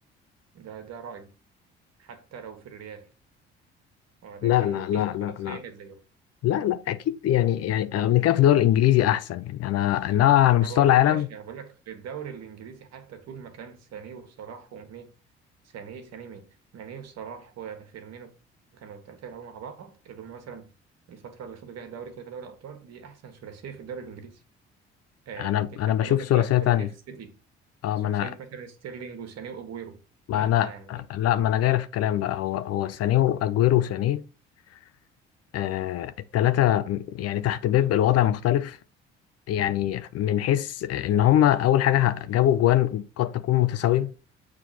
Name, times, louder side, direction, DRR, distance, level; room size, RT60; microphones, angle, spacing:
voice 1, 0.5-1.3 2.0-3.1 4.2-6.0 10.6-15.1 15.6-16.5 16.7-18.3 18.7-20.7 21.1-24.4 25.2-27.3 28.0-30.0 30.3-31.0, right 7 dB, 55° right, 1.4 m, -41 dB
voice 2, 4.4-5.6 6.4-11.3 25.4-26.9 27.8-28.3 30.3-34.2 35.5-38.8 39.5-44.1, left 12 dB, 50° left, 0.6 m, -22 dB
7.4 x 3.3 x 4.2 m
hypercardioid pair, 50°, 31 cm